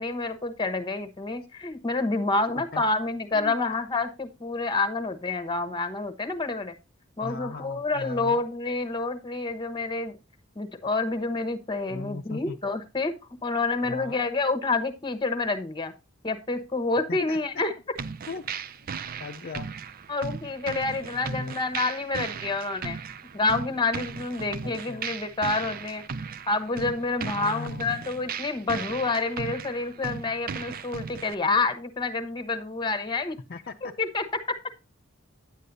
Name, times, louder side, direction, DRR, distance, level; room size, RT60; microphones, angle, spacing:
voice 1, 0.0-6.7 7.2-10.2 10.6-15.9 16.2-17.7 20.1-23.0 23.3-26.0 26.5-33.4 33.8-34.2, left 3 dB, 25° left, 10 dB, 1.0 m, -28 dB
voice 2, 7.2-8.4 11.9-12.6 13.8-14.1 17.1-17.4 18.3-18.4 19.2-19.7 21.2-21.6 24.6-25.1 27.2-28.0 33.5-33.9, left 3 dB, 50° left, 4 dB, 0.5 m, -38 dB
sound 1, 18.0-31.3, right 6 dB, 45° right, 0.4 m, -37 dB
9.8 x 8.3 x 2.6 m, 0.28 s
head